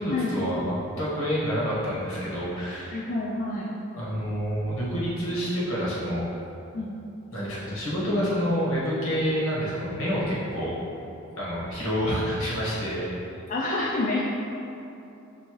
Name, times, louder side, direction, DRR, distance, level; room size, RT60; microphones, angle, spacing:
voice 1, 0.0-3.0 3.9-6.3 7.3-10.7 11.4-13.3, equal, 80° left, -7 dB, 1.2 m, -28 dB
voice 2, 2.9-3.7 6.7-6.9 13.5-14.3, left 2 dB, 40° left, -5 dB, 0.3 m, -28 dB
5.4 x 2.7 x 3.0 m, 2.8 s
head